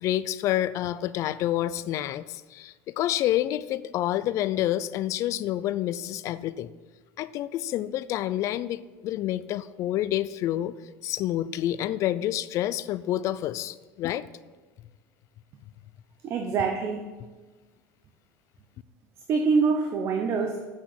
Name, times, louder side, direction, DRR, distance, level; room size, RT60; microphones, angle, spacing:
voice 1, 0.0-6.7 7.2-10.7 11.0-14.3, left 13 dB, 50° left, 16 dB, 0.4 m, -28 dB
voice 2, 16.2-17.1 19.3-20.7, right 5 dB, 40° right, 5 dB, 0.9 m, -25 dB
8.2 x 6.3 x 7.6 m, 1.3 s
cardioid pair, 135°, 7 cm